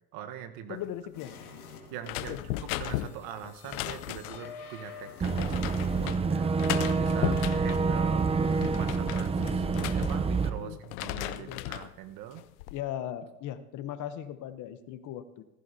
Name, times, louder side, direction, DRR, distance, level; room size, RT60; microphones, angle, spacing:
voice 1, 0.1-0.8 1.9-2.4 2.8-8.3 8.7-12.4, right 9 dB, 55° right, 9 dB, 1.2 m, -42 dB
voice 2, 0.7-1.4 2.2-2.4 10.6-10.8 11.3-11.7 12.7-15.4, left 11 dB, 45° left, 12 dB, 0.9 m, -38 dB
sound 1, 1.1-6.1, left 6 dB, 90° left, 2.0 m, -48 dB
sound 2, 2.0-4.5 5.2-6.2 6.6-7.8 8.3-10.5 10.8-11.9 12.4-12.8, left 15 dB, 65° left, 0.7 m, -36 dB
Boat Water vehicle / Engine, 5.2-10.5, right 4 dB, 15° right, 0.7 m, -27 dB
15.0 x 15.0 x 2.8 m, 0.98 s
hypercardioid pair, 105°, 43 cm